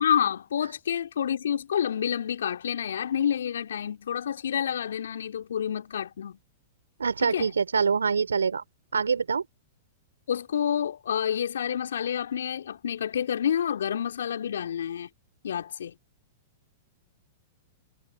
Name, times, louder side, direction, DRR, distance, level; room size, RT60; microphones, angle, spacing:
voice 1, 0.0-6.4 7.2-7.5 10.3-15.1 15.4-15.9, left 9 dB, 70° left, 2.9 m, -28 dB
voice 2, 7.0-8.6 8.9-9.4, right 5 dB, 80° right, 3.4 m, -25 dB
figure-of-eight pair, 100°, 0 cm